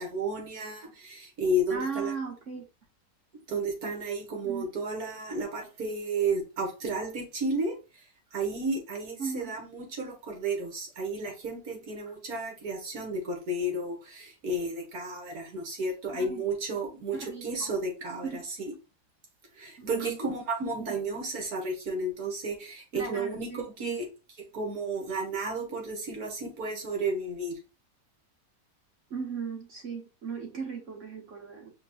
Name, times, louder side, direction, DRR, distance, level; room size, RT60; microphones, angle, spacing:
voice 1, 0.0-2.1 3.5-7.8 8.3-18.7 19.6-24.1 24.5-27.6, right 2 dB, 65° right, 1.9 m, -32 dB
voice 2, 1.7-2.6 4.4-4.6 9.2-9.5 16.1-16.4 17.1-17.7 18.2-18.4 19.8-20.2 20.8-21.0 22.9-24.0 29.1-31.7, right 5 dB, 50° right, 1.7 m, -37 dB
5.1 x 2.4 x 4.1 m
omnidirectional pair, 1.7 m